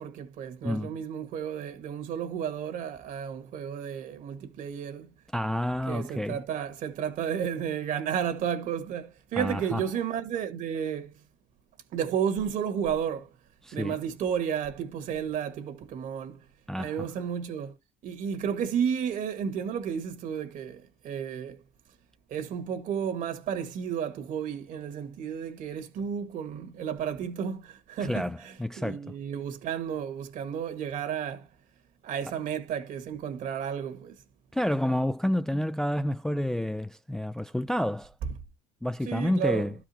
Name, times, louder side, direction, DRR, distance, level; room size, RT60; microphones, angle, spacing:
voice 1, 0.0-5.1 5.9-11.1 11.9-13.3 13.7-16.4 16.8-17.7 18.0-21.6 22.3-31.5 32.0-34.1 39.0-39.7, right 8 dB, 60° right, 1.6 m, -32 dB
voice 2, 0.6-0.9 5.3-6.4 9.3-9.8 13.6-13.9 16.7-17.1 28.0-29.0 34.5-38.1 38.8-39.7, left 1 dB, 5° left, 0.3 m, -29 dB
12.5 x 5.0 x 2.8 m
supercardioid pair, 90°, 15 cm